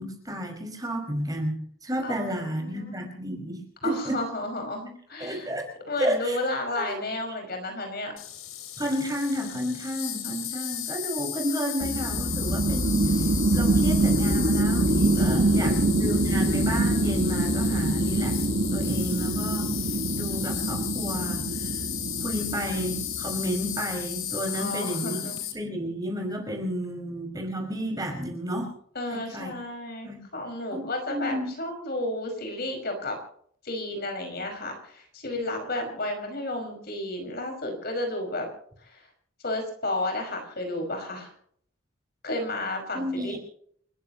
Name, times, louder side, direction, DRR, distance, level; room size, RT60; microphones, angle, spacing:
voice 1, 0.0-4.2 5.2-5.7 6.0-6.4 6.7-7.0 8.8-18.4 18.7-19.7 20.1-21.9 22.2-28.7 29.1-29.5 30.0-30.3 30.7-31.5 42.9-43.4, equal, 20° right, 2 dB, 5.5 m, -32 dB
voice 2, 2.0-2.9 3.8-5.5 5.9-8.1 15.1-15.8 24.5-25.3 29.0-33.2 33.6-38.5 38.8-39.1 39.4-41.3 42.2-43.4, left 2 dB, 50° left, 4 dB, 5.5 m, -32 dB
Insect, 8.2-25.5, left 11 dB, 90° left, 3.3 m, -34 dB
sound 1, 11.8-23.9, right 2 dB, 65° right, 1.6 m, -25 dB
30.0 x 15.5 x 3.0 m, 0.63 s
head